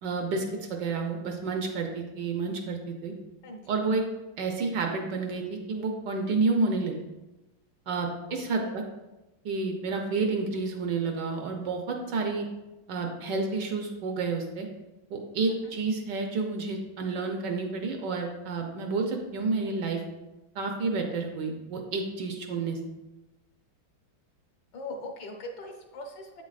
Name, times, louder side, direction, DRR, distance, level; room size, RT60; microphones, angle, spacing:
voice 1, 0.0-3.1 3.7-4.0 4.4-7.0 7.9-8.8 9.4-12.5 12.9-14.7 15.1-20.0 20.5-22.8, right 3 dB, 70° right, 3 dB, 1.3 m, -30 dB
voice 2, 8.3-8.7 15.6-15.8 24.7-26.4, left 2 dB, 65° left, 3 dB, 1.4 m, -40 dB
7.9 x 6.2 x 2.5 m, 1.0 s
omnidirectional pair, 2.2 m